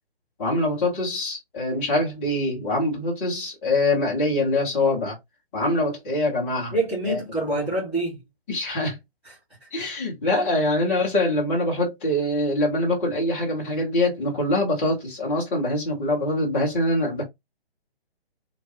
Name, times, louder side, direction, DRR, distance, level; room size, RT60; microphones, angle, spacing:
voice 1, 0.4-5.2 5.5-6.7 7.1-7.2 8.5-9.0 9.7-17.2, left 1 dB, 15° left, 0.6 m, -24 dB
voice 2, 6.7-8.2 9.2-9.3 9.6-9.9 10.2-10.6, right 1 dB, 5° right, 1.5 m, -27 dB
3.1 x 2.2 x 2.7 m
figure-of-eight pair, 135°, 31 cm